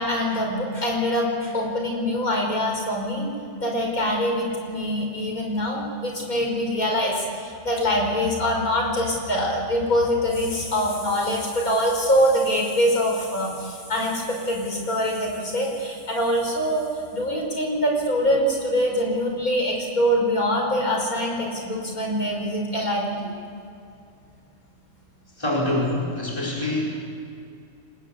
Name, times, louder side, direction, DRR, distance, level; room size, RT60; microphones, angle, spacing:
voice 1, 0.0-3.3 3.6-16.9 17.1-23.2, equal, 75° left, 0 dB, 5.9 m, -24 dB
voice 2, 25.4-26.8, left 1 dB, 15° left, -4 dB, 4.8 m, -25 dB
26.5 x 20.0 x 8.3 m, 2.5 s
omnidirectional pair, 1.5 m